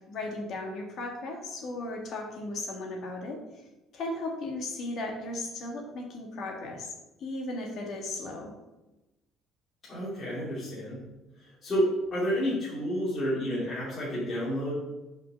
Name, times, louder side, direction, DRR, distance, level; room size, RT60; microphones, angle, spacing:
voice 1, 0.1-3.4 3.9-6.9 7.2-8.5, left 2 dB, 45° left, 1 dB, 1.7 m, -36 dB
voice 2, 9.8-11.0 11.3-14.7, equal, 25° left, -8 dB, 2.4 m, -30 dB
5.7 x 5.1 x 5.7 m, 1.0 s
cardioid pair, 165°, 0 cm